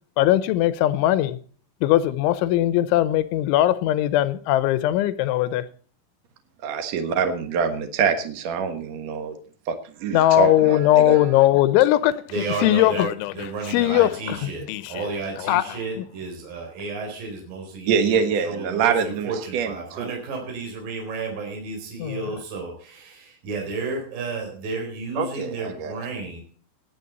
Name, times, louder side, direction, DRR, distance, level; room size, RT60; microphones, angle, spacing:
voice 1, 0.2-1.4 1.8-5.7 10.1-15.1 15.4-15.6 16.0-16.1 22.0-22.2, left 13 dB, 85° left, 3.2 m, -20 dB
voice 2, 6.6-9.3 9.7-11.2 17.9-20.1 25.1-25.9, right 6 dB, 90° right, 1.5 m, -25 dB
voice 3, 12.3-18.2 18.4-26.4, right 3 dB, 50° right, 5.3 m, -32 dB
19.5 x 8.5 x 4.0 m
omnidirectional pair, 5.4 m